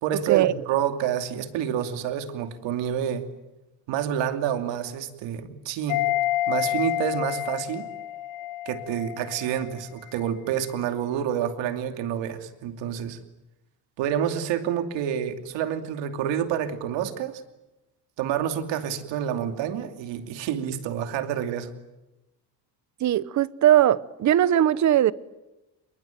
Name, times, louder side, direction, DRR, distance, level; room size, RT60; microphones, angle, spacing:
voice 1, 0.0-3.3 3.9-6.0 6.5-7.9 8.7-13.2 14.0-17.4 18.2-21.7, right 9 dB, 90° right, 2.8 m, -28 dB
sound 1, 5.9-9.8 10.1-10.2, left 14 dB, 50° left, 2.4 m, -29 dB
voice 2, 23.0-25.1, right 12 dB, 40° right, 0.9 m, -20 dB
28.0 x 22.5 x 9.2 m
cardioid pair, 160°, 43 cm